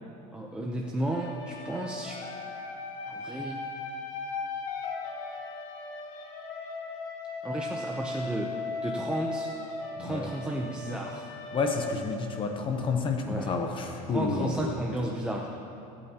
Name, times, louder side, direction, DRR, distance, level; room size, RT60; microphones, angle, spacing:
voice 1, 0.3-2.2 3.1-3.6 7.4-8.5 8.8-9.5 10.0-11.3 13.2-13.5 14.1-15.5, right 1 dB, 5° right, -1 dB, 0.7 m, -33 dB
Irish Whistle, 1.1-12.9, left 3 dB, 50° left, 1.8 m, -38 dB
voice 2, 11.5-14.7, left 4 dB, 30° left, 4 dB, 0.9 m, -30 dB
21.5 x 8.9 x 2.9 m, 2.6 s
supercardioid pair, 140°, 18 cm